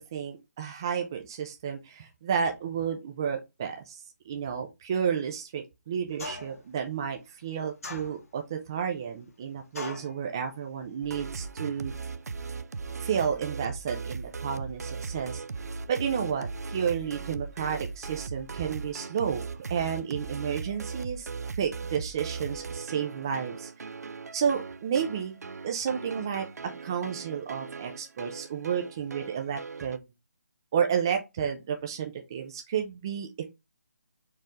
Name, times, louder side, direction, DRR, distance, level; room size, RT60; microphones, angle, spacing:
voice 1, 0.0-4.0 4.3-11.9 13.0-15.4 15.9-21.3 21.6-23.7 24.3-25.4 25.6-26.5 26.8-30.0 30.7-33.4, right 7 dB, 15° right, 0.4 m, -31 dB
sound 1, 6.2-6.7 7.8-8.5 9.7-10.2, left 3 dB, 55° left, 1.5 m, -39 dB
sound 2, 11.0-30.0, right 4 dB, 65° right, 0.5 m, -38 dB
4.5 x 3.1 x 3.5 m
hypercardioid pair, 170°, 9 cm